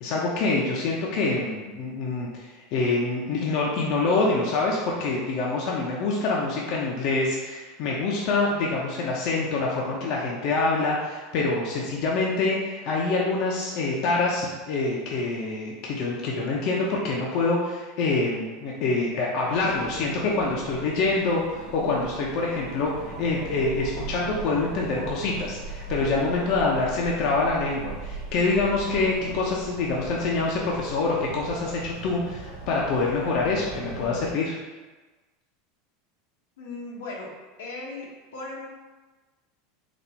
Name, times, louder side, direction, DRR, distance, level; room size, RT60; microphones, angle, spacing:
voice 1, 0.0-34.6, left 3 dB, 55° left, -3 dB, 0.7 m, -26 dB
sound 1, 19.4-34.3, right 3 dB, 80° right, 1.2 m, -39 dB
voice 2, 36.6-37.3 37.6-38.1 38.3-38.7, left 2 dB, 90° left, -3 dB, 1.2 m, -36 dB
4.2 x 2.6 x 4.4 m, 1.2 s
supercardioid pair, 130°, 0 cm